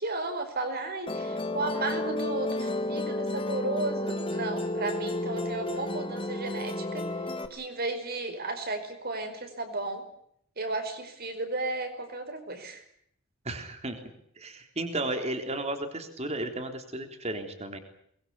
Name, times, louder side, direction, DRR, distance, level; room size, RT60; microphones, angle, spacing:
voice 1, 0.0-10.0 10.6-12.8, right 2 dB, 45° right, 8 dB, 5.2 m, -34 dB
Musical instrument, 1.1-7.5, left 1 dB, 25° left, 1.9 m, -32 dB
voice 2, 13.5-14.0 14.4-17.8, right 2 dB, 30° right, 6 dB, 3.6 m, -34 dB
23.5 x 22.0 x 8.5 m, 0.69 s
head